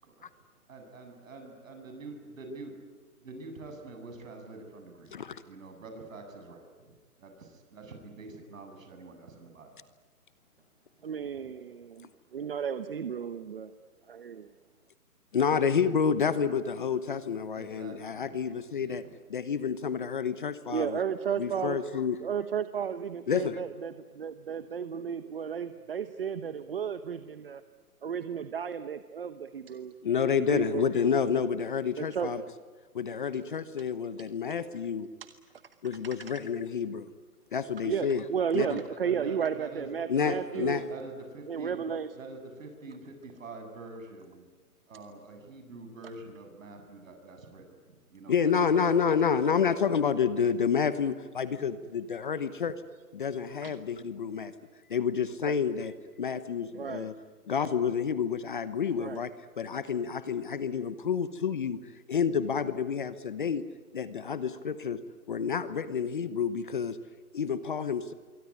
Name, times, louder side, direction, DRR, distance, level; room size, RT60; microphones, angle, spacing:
voice 1, 0.7-2.7 3.2-5.1 5.4-9.7 17.5-18.4 18.8-19.2 38.5-44.5 44.9-49.5, right 2 dB, 55° right, 5 dB, 7.8 m, -46 dB
voice 2, 5.1-5.4 15.3-19.0 19.3-21.0 21.4-22.2 23.3-23.6 30.0-32.4 32.9-35.1 35.8-37.1 37.5-38.3 38.5-38.8 40.1-40.8 48.3-52.7 53.1-54.5 54.9-57.1 57.5-63.6 63.9-65.0 65.3-67.0 67.3-68.1, left 6 dB, 35° left, 14 dB, 1.0 m, -29 dB
voice 3, 11.0-13.7 14.1-14.5 20.7-21.8 22.2-27.6 28.0-29.9 30.5-30.9 32.0-32.3 37.8-40.8 41.5-42.1 53.6-53.7 54.4-54.5 55.5-55.6 56.7-57.1 59.0-59.2, right 7 dB, 40° right, 11 dB, 1.0 m, -33 dB
26.0 x 23.5 x 9.6 m, 1.4 s
hypercardioid pair, 170°, 45 cm